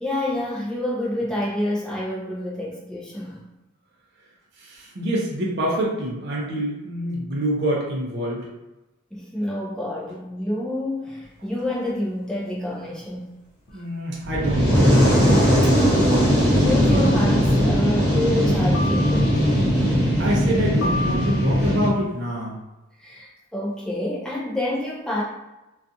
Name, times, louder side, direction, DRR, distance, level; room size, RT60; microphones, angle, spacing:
voice 1, 0.0-3.5 9.1-13.3 13.7-13.8 16.3-19.3 23.0-25.2, left 1 dB, 5° left, -5 dB, 0.4 m, -28 dB
voice 2, 4.6-8.5 13.7-15.7 20.2-22.6, equal, 50° right, -3 dB, 0.5 m, -26 dB
sound 1, 13.7-13.8 15.3-15.6 16.9-17.5 18.7-19.5 20.8-21.7, left 2 dB, 55° left, 0.5 m, -32 dB
Fire, 14.2-21.9, equal, 35° right, 0.9 m, -19 dB
2.4 x 2.3 x 2.6 m, 1.0 s
head